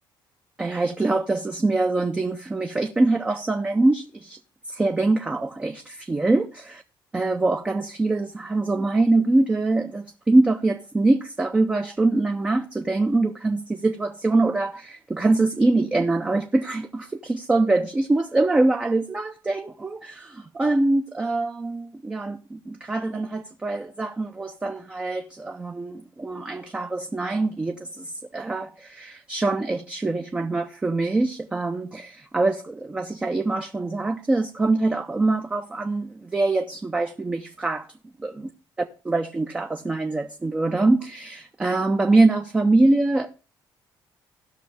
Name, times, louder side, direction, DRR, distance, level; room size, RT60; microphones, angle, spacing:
voice 1, 0.6-4.4 4.7-6.8 7.1-37.9 38.2-38.5 39.0-43.3, right 2 dB, 10° right, 0.5 m, -24 dB
16.5 x 6.3 x 3.4 m
cardioid pair, 180°, 9 cm